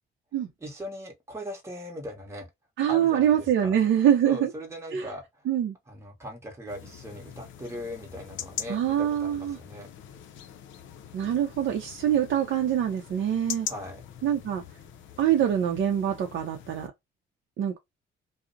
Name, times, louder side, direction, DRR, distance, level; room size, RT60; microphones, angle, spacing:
voice 1, 0.6-2.5 2.9-3.7 4.2-5.5 5.9-9.9 13.6-14.0, equal, 15° right, 0.9 m, -39 dB
voice 2, 2.8-4.5 4.9-5.1 5.5-5.7 8.7-9.6 11.1-13.7 14.2-14.6 15.2-16.9 17.6-17.8, right 10 dB, 70° right, 0.5 m, -24 dB
sound 1, 6.7-16.9, left 9 dB, 75° left, 0.4 m, -42 dB
2.5 x 2.0 x 2.4 m
cardioid pair, 90°, 20 cm